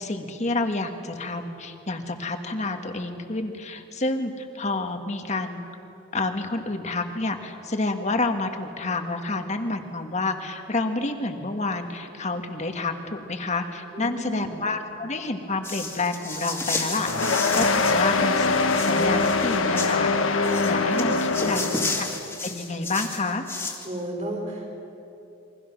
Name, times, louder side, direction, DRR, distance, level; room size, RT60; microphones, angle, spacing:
voice 1, 0.0-5.6 6.1-17.1 17.6-20.1 20.6-21.6 22.0-22.1 22.4-23.5, left 3 dB, 35° left, 6 dB, 1.6 m, -29 dB
voice 2, 13.9-14.6 20.9-21.8 23.8-24.7, right 1 dB, 40° right, 0 dB, 5.1 m, -34 dB
sound 1, 15.6-18.0 18.3-20.0 20.4-23.9, left 3 dB, 10° left, 2.5 m, -32 dB
sound 2, 17.1-22.2, left 3 dB, 85° left, 1.3 m, -23 dB
28.5 x 23.0 x 6.1 m, 2.9 s
head